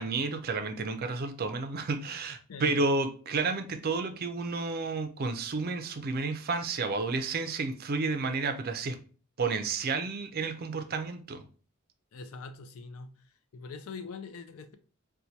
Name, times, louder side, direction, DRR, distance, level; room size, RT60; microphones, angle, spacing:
voice 1, 0.0-9.0 9.4-11.4, right 3 dB, 45° right, 0.4 m, -31 dB
voice 2, 2.5-2.9 12.1-13.1 13.5-14.8, left 4 dB, 75° left, 0.4 m, -42 dB
4.3 x 2.2 x 2.7 m
head